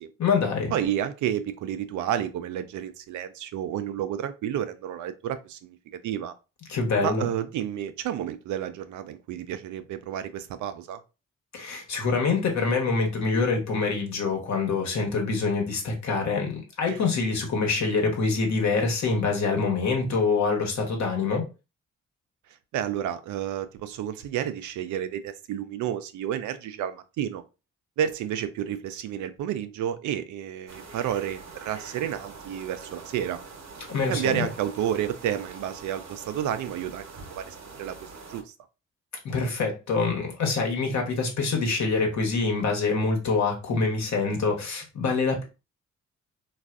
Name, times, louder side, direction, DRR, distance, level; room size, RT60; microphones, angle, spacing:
voice 1, 0.2-0.8 6.7-7.3 11.5-21.5 33.9-34.5 39.2-45.4, left 4 dB, 65° left, 1.1 m, -25 dB
voice 2, 0.7-5.8 6.0-6.3 7.0-11.0 16.9-17.0 22.7-27.4 28.0-33.4 34.1-37.0 37.3-38.4, right 10 dB, 80° right, 0.4 m, -31 dB
sound 1, 30.7-38.4, right 4 dB, 65° right, 0.9 m, -44 dB
3.2 x 2.4 x 2.4 m
supercardioid pair, 45°, 30 cm